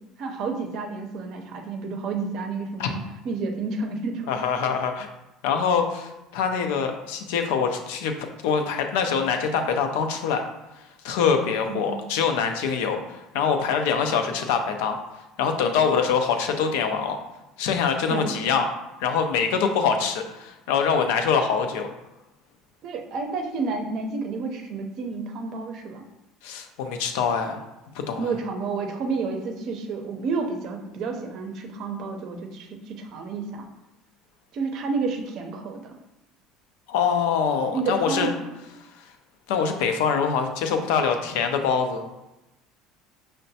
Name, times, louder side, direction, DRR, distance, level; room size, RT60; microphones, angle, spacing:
voice 1, 0.2-4.3 11.6-12.0 18.1-18.4 22.8-26.0 28.2-33.7 34.5-36.0 37.7-38.3, right 4 dB, 60° right, 4 dB, 0.6 m, -30 dB
voice 2, 4.3-5.1 5.4-8.1 8.4-10.4 11.0-15.0 15.4-17.2 17.6-18.7 19.0-21.9 26.4-27.6 28.1-28.3 36.9-38.3 39.5-42.2, left 6 dB, 85° left, 5 dB, 0.4 m, -24 dB
5.7 x 2.1 x 2.7 m, 0.97 s
supercardioid pair, 105°, 0 cm